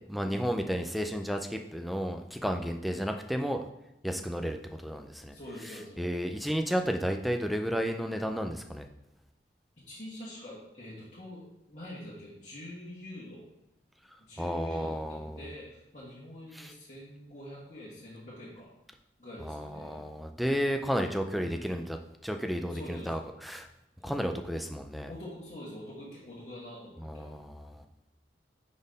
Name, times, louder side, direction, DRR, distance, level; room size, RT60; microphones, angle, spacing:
voice 1, 0.1-3.6 4.0-5.3 6.0-8.9 14.4-15.4 16.5-16.7 19.5-22.0 22.2-23.7 24.0-25.1 27.0-27.8, equal, ahead, 5 dB, 0.3 m, -32 dB
voice 2, 5.3-6.0 9.8-13.5 14.2-18.7 19.2-20.0 20.9-21.6 22.7-23.3 25.1-27.3, left 1 dB, 40° left, -9 dB, 1.5 m, -45 dB
5.4 x 4.1 x 5.2 m, 0.89 s
head